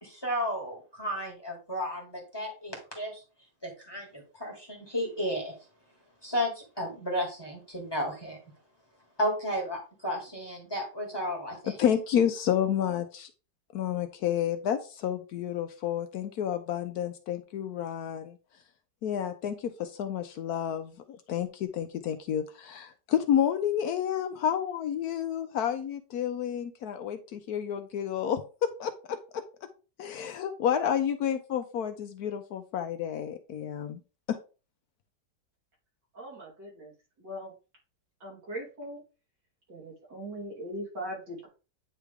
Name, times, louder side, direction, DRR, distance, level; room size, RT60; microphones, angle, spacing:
voice 1, 0.0-3.2 3.6-5.5 6.2-8.4 9.2-11.7, equal, 15° left, -1 dB, 1.8 m, -33 dB
voice 2, 11.8-13.3 13.7-18.4 19.0-29.4 30.0-34.0 34.3-34.4, left 9 dB, 70° left, 8 dB, 1.1 m, -30 dB
voice 3, 36.1-36.9 37.2-37.5 38.2-39.0 39.7-41.5, equal, 80° right, -4 dB, 3.5 m, -40 dB
9.1 x 3.3 x 3.5 m, 0.33 s
omnidirectional pair, 1.8 m